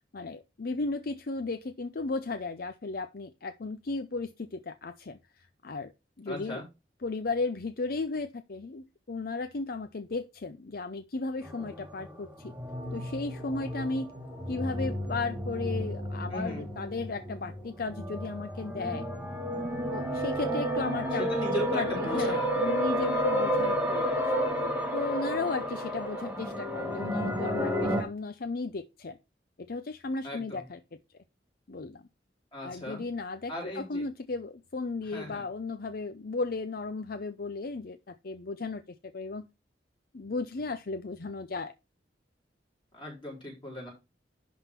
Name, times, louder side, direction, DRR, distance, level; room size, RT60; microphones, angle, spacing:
voice 1, 0.1-5.9 6.2-6.6 7.0-12.5 12.9-14.1 14.5-19.1 19.9-24.4 24.9-29.2 29.7-30.8 31.7-32.0 32.6-38.8 39.1-39.5 40.1-41.7, left 3 dB, 60° left, 0.6 m, -35 dB
voice 2, 6.3-6.6 16.3-16.6 21.3-22.7 30.2-30.6 32.5-33.0 33.5-34.0 35.0-35.4 42.9-43.9, equal, 30° left, 4.2 m, -37 dB
sound 1, 11.4-28.0, equal, 10° right, 1.9 m, -31 dB
11.0 x 3.7 x 5.9 m
head